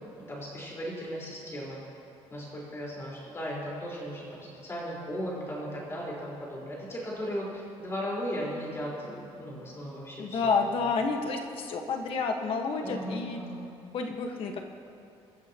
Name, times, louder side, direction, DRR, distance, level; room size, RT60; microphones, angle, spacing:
voice 1, 0.2-1.8 2.3-7.5 7.8-10.5 12.8-13.6, equal, 25° left, -5 dB, 4.4 m, -36 dB
voice 2, 10.2-13.4 13.9-14.6, left 4 dB, 55° left, 3 dB, 1.5 m, -29 dB
25.0 x 14.0 x 3.0 m, 2.6 s
cardioid pair, 165°, 11 cm